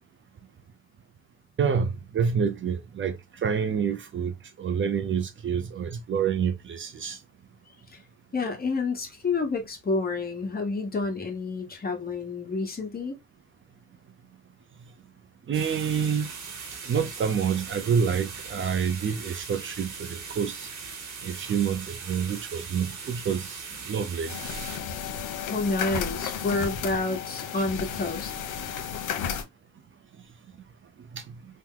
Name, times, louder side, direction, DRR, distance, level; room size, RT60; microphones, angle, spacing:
voice 1, 1.6-7.2 15.5-16.3 16.8-20.7 21.2-24.3 31.1-31.2, right 7 dB, 40° right, 0.5 m, -28 dB
voice 2, 8.3-13.2 25.4-28.3, left 3 dB, 30° left, 1.2 m, -29 dB
sound 1, 15.5-24.8, right 5 dB, 75° right, 1.3 m, -40 dB
sound 2, 24.3-29.4, left 7 dB, 85° left, 0.8 m, -33 dB
3.0 x 2.0 x 3.7 m
cardioid pair, 90°, 30 cm